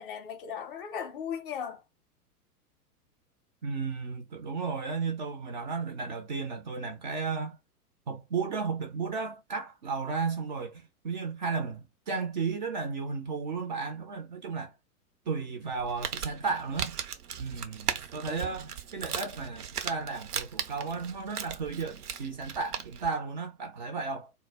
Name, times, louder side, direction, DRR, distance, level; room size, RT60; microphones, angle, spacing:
voice 1, 0.0-1.8 18.3-18.6, left 8 dB, 40° left, 0.5 m, -37 dB
voice 2, 3.6-7.6 8.1-14.7 15.3-17.0 17.4-24.3, right 4 dB, 35° right, 0.4 m, -34 dB
Crumpling crinkling, 15.7-23.1, right 8 dB, 75° right, 0.6 m, -38 dB
2.1 x 2.0 x 3.3 m
figure-of-eight pair, 100°, 46 cm